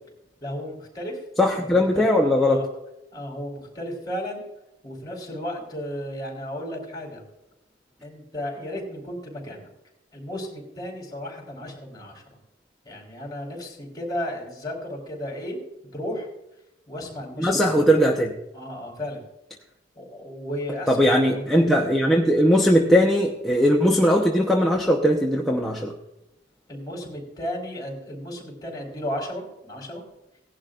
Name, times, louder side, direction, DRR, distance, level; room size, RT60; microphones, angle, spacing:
voice 1, 0.4-1.2 1.6-2.7 3.1-4.4 4.8-7.2 8.0-9.7 10.1-12.4 12.8-15.6 15.9-16.3 16.9-17.9 18.5-19.3 19.9-21.7 26.7-30.0, equal, 20° left, 0 dB, 4.1 m, -34 dB
voice 2, 1.4-2.6 17.4-18.3 20.9-25.9, equal, ahead, -2 dB, 1.0 m, -19 dB
18.0 x 11.0 x 2.5 m, 0.88 s
head